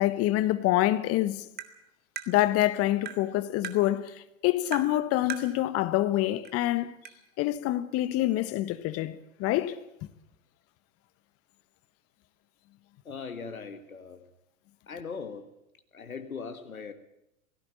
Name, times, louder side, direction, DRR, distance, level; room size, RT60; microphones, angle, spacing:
voice 1, 0.0-1.4 2.3-6.9 7.4-9.8, left 15 dB, 35° left, 1.3 m, -26 dB
Tap, 1.6-1.7 2.2-2.3 3.0-3.2 3.6-3.8 4.7-4.9 5.3-5.5 6.4-6.5 7.0-7.1, right 9 dB, 25° right, 2.0 m, -37 dB
voice 2, 13.1-14.2 14.9-15.5 15.9-16.9, left 5 dB, 85° left, 1.8 m, -39 dB
18.0 x 16.5 x 8.8 m
figure-of-eight pair, 100°, 41 cm